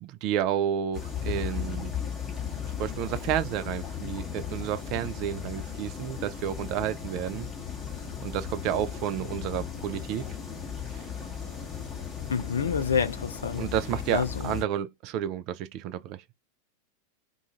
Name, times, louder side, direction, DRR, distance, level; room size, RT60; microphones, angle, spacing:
voice 1, 0.0-1.9 2.8-7.5 8.2-10.3 10.9-11.0 13.6-16.2, right 10 dB, 40° right, 0.3 m, -31 dB
sound 1, 0.9-14.6, left 7 dB, 15° left, 0.9 m, -36 dB
voice 2, 12.3-13.7 14.1-14.5, left 6 dB, 70° left, 0.4 m, -28 dB
2.4 x 2.3 x 2.8 m
figure-of-eight pair, 90°, 0 cm